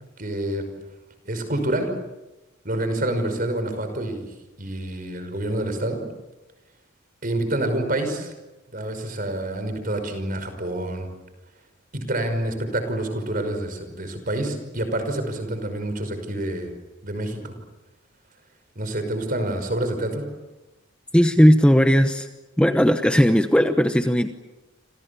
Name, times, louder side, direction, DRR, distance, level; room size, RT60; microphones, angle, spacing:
voice 1, 0.2-0.6 1.2-1.9 2.6-4.3 4.6-6.0 7.2-8.3 8.7-11.1 11.9-16.7 17.0-17.5 18.8-20.2, right 1 dB, 45° right, 8 dB, 5.6 m, -27 dB
voice 2, 21.1-22.3 22.6-24.3, equal, 5° left, 7 dB, 1.0 m, -17 dB
29.5 x 27.0 x 7.1 m, 1.1 s
head